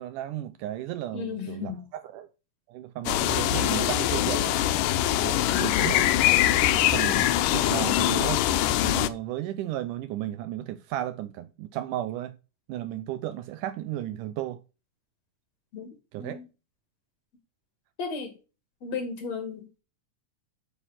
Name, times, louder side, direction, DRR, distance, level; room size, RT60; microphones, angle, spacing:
voice 1, 0.0-2.3 2.7-4.6 5.2-6.2 6.6-8.4 8.8-12.4 12.7-14.6 16.1-16.4, right 13 dB, 80° right, 2.2 m, -34 dB
voice 2, 1.1-1.8 5.5-5.9 15.7-16.5 18.0-18.4 18.8-19.8, left 5 dB, 55° left, 3.3 m, -35 dB
sound 1, 3.1-9.1, left 13 dB, 85° left, 2.3 m, -23 dB
8.3 x 7.2 x 7.4 m
omnidirectional pair, 3.7 m